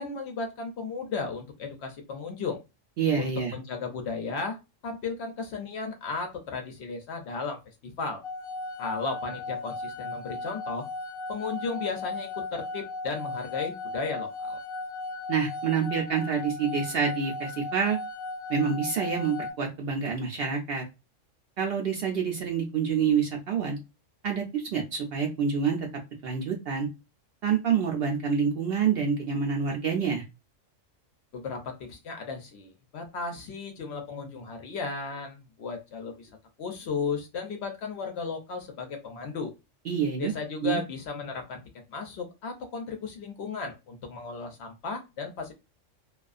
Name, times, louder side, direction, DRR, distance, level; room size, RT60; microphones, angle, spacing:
voice 1, 0.0-2.6 3.2-4.6 4.8-8.2 8.8-10.9 11.3-14.6 31.3-36.3 36.6-39.5 40.2-41.6 41.9-45.5, left 4 dB, 65° left, 4 dB, 0.8 m, -35 dB
voice 2, 3.0-3.5 15.3-18.0 18.5-20.8 21.6-23.8 24.2-25.9 26.2-26.9 27.4-30.2 39.9-40.3 40.6-40.8, right 6 dB, 65° right, 2 dB, 0.6 m, -27 dB
sound 1, 8.2-19.5, left 2 dB, 40° left, 0.4 m, -36 dB
2.4 x 2.3 x 2.4 m, 0.25 s
omnidirectional pair, 1.3 m